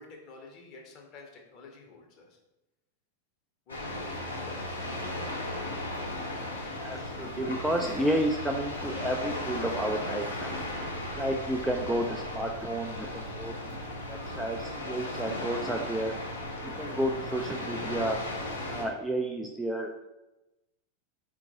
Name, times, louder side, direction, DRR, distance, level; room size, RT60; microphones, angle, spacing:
voice 1, 0.0-2.4 3.7-5.4, left 3 dB, 35° left, 1 dB, 0.9 m, -51 dB
sound 1, 3.7-18.8, left 1 dB, 80° left, 1.0 m, -36 dB
voice 2, 6.6-10.5 11.2-13.7 14.1-16.1 16.6-18.2 18.7-20.1, right 1 dB, 5° right, 2 dB, 0.3 m, -31 dB
4.4 x 2.5 x 4.0 m, 0.98 s
figure-of-eight pair, 90°, 0 cm